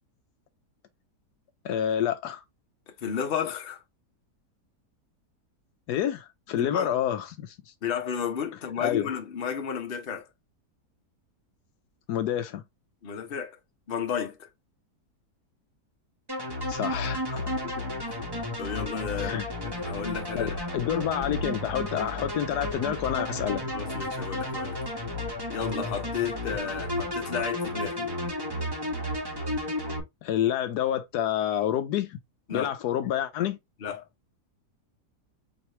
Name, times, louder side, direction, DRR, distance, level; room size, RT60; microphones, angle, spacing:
voice 1, 1.6-2.4 5.9-7.7 8.8-9.1 12.1-12.6 16.7-17.4 19.2-19.5 20.3-23.7 30.2-32.2 32.5-33.6, left 10 dB, 75° left, 1.1 m, -28 dB
voice 2, 2.9-3.8 6.6-6.9 7.8-10.3 13.0-13.6 13.9-14.5 17.6-18.1 18.6-20.7 23.7-24.8 25.5-28.2 32.5-32.7 33.8-34.0, left 7 dB, 40° left, 1.0 m, -33 dB
sound 1, 16.3-30.0, left 1 dB, 15° right, 1.2 m, -32 dB
4.7 x 2.9 x 3.0 m
omnidirectional pair, 1.8 m